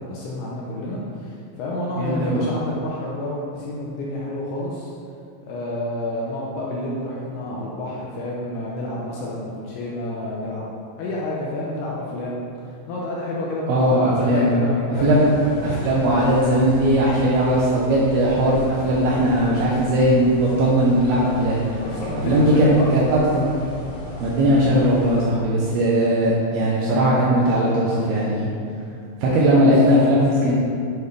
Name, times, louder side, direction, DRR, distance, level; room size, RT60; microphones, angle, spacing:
voice 1, 0.0-4.9 5.5-10.7 11.0-12.4 12.9-15.7 21.7-23.0 29.2-29.7, left 1 dB, 75° left, -5 dB, 2.4 m, -29 dB
voice 2, 2.0-2.4 13.7-14.6 15.0-15.3 15.6-21.6 22.2-23.4 24.2-28.5 29.2-30.5, right 1 dB, 75° right, -5 dB, 2.4 m, -18 dB
sound 1, 15.0-25.2, left 2 dB, 50° left, 2.8 m, -37 dB
8.7 x 6.9 x 3.3 m, 2.5 s
omnidirectional pair, 5.4 m